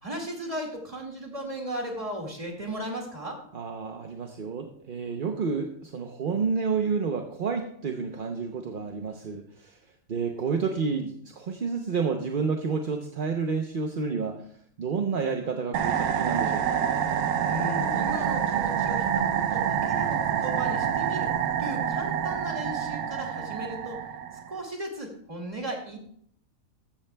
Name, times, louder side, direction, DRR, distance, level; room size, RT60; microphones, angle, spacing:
voice 1, 0.0-3.4 17.4-21.3 21.6-24.0 24.5-26.0, right 1 dB, 25° right, 1 dB, 2.0 m, -36 dB
voice 2, 3.5-9.7 10.1-14.4 14.8-16.8, right 5 dB, 45° right, 4 dB, 0.8 m, -30 dB
sound 1, 15.7-24.6, right 8 dB, 80° right, 1.2 m, -27 dB
14.0 x 13.0 x 2.2 m, 0.66 s
omnidirectional pair, 1.5 m